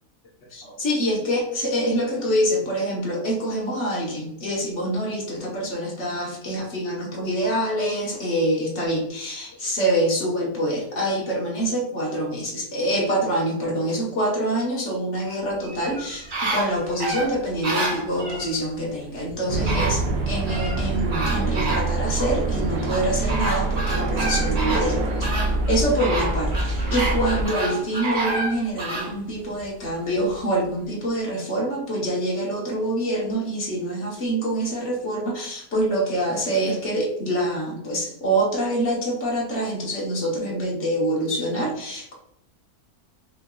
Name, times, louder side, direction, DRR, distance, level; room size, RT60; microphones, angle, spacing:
voice 1, 0.5-16.2 16.5-25.4 25.7-42.1, right 1 dB, 50° left, -3 dB, 1.3 m, -25 dB
sound 1, 15.6-18.5 19.3-19.4 19.7-20.8 21.1-22.3 22.9-29.1 29.6-29.7, right 2 dB, 90° right, 2.3 m, -29 dB
sound 2, 19.5-27.5, right 3 dB, 70° right, 1.2 m, -25 dB
4.8 x 2.6 x 2.3 m, 0.77 s
omnidirectional pair, 1.6 m